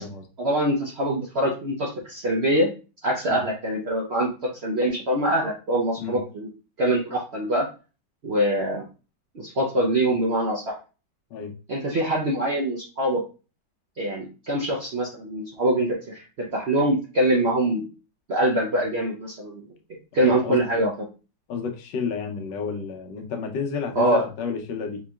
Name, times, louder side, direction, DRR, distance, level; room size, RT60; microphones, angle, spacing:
voice 1, 0.4-2.7 3.0-6.5 6.8-7.7 8.2-8.9 9.3-10.7 11.7-13.2 14.0-17.9 18.3-19.6 20.1-20.9 24.0-24.3, right 1 dB, 65° right, -2 dB, 0.6 m, -24 dB
voice 2, 20.2-20.8 21.5-25.0, left 5 dB, 80° left, 4 dB, 1.3 m, -31 dB
4.4 x 2.9 x 2.2 m, 0.33 s
omnidirectional pair, 1.9 m